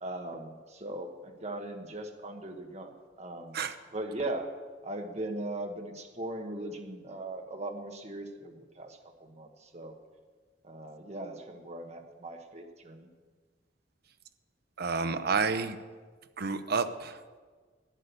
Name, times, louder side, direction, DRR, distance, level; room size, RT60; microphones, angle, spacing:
voice 1, 0.0-2.9 3.2-3.6 3.9-4.5 4.8-9.9 10.6-13.1, right 1 dB, 35° right, 4 dB, 1.3 m, -39 dB
voice 2, 14.8-15.8 16.4-17.2, right 4 dB, 55° right, 10 dB, 0.7 m, -30 dB
12.0 x 9.8 x 6.8 m, 1.5 s
head